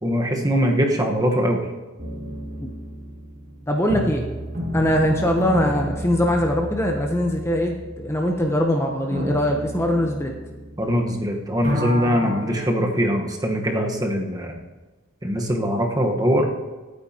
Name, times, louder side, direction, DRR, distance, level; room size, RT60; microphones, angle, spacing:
voice 1, 0.0-1.7 10.8-14.6 15.2-16.5, equal, 20° right, 1 dB, 1.3 m, -22 dB
sound 1, 2.0-11.2 11.5-13.0, equal, 40° right, 2.0 m, -31 dB
voice 2, 3.7-4.3 4.7-10.3 12.2-12.5, equal, 15° left, 1 dB, 0.9 m, -22 dB
24.0 x 9.1 x 2.9 m, 1.2 s
head